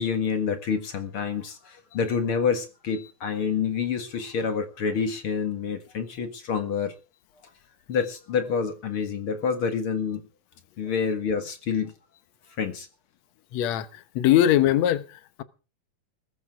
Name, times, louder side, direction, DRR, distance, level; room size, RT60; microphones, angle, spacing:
voice 1, 0.0-7.0 7.9-10.2 10.8-11.9 12.6-12.9, left 6 dB, 50° left, 2.3 m, -28 dB
voice 2, 13.5-15.4, left 12 dB, 70° left, 2.2 m, -22 dB
21.0 x 14.0 x 3.7 m
omnidirectional pair, 3.4 m